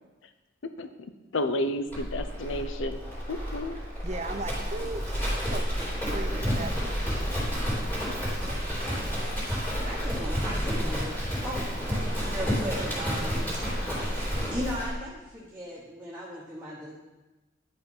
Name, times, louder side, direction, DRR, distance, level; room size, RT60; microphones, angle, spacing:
voice 1, 0.6-3.0 3.3-3.8, left 1 dB, 75° left, 9 dB, 0.6 m, -32 dB
Livestock farm animals working animals, 1.9-14.9, equal, 10° left, 3.1 m, -30 dB
voice 2, 4.0-7.0, right 2 dB, 35° right, 7 dB, 0.7 m, -38 dB
voice 3, 9.9-11.1 11.4-11.6 12.1-13.8 14.5-16.9, equal, 10° right, -6 dB, 1.3 m, -37 dB
10.0 x 5.7 x 5.5 m, 1.1 s
head